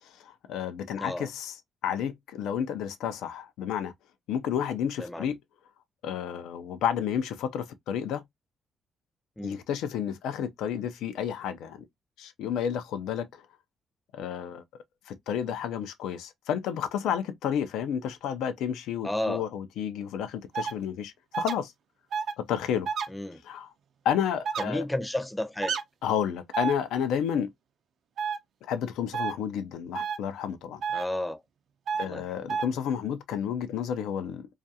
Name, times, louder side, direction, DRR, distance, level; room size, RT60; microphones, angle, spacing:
voice 1, 0.2-1.6 1.8-3.9 4.3-5.4 6.0-8.2 9.4-11.9 12.2-13.4 14.1-14.6 15.1-21.7 22.4-22.9 23.4-23.7 24.0-24.8 26.0-27.5 28.6-30.8 32.0-34.5, left 8 dB, 85° left, 0.4 m, -31 dB
voice 2, 1.0-1.3 5.0-5.3 9.4-9.6 19.0-19.5 23.1-23.4 24.6-25.8 30.9-31.4 32.0-32.4, left 1 dB, 10° left, 0.5 m, -32 dB
sound 1, 20.5-20.7 21.3-21.5 22.1-22.3 22.9-23.1 24.5-24.6 25.6-25.8 26.5-26.7 28.2-28.4 29.1-29.3 29.9-30.2 30.8-31.0 31.9-32.1 32.5-32.7, right 6 dB, 65° right, 0.4 m, -29 dB
2.4 x 2.2 x 2.6 m
cardioid pair, 90°, 0 cm